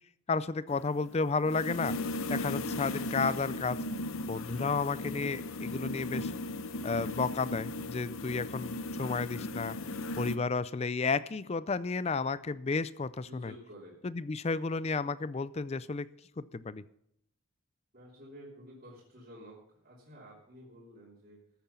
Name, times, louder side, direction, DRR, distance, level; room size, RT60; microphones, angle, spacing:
voice 1, 0.3-2.0 2.3-3.8 4.3-6.3 6.8-9.8 10.2-13.5 14.0-16.1 16.4-16.8, left 4 dB, 30° left, 17 dB, 0.4 m, -32 dB
sound 1, 0.7-10.4, left 2 dB, 70° left, 0.8 m, -37 dB
voice 2, 13.3-14.0 17.9-21.4, equal, 45° right, -7 dB, 3.2 m, -51 dB
13.5 x 8.6 x 5.7 m, 0.75 s
head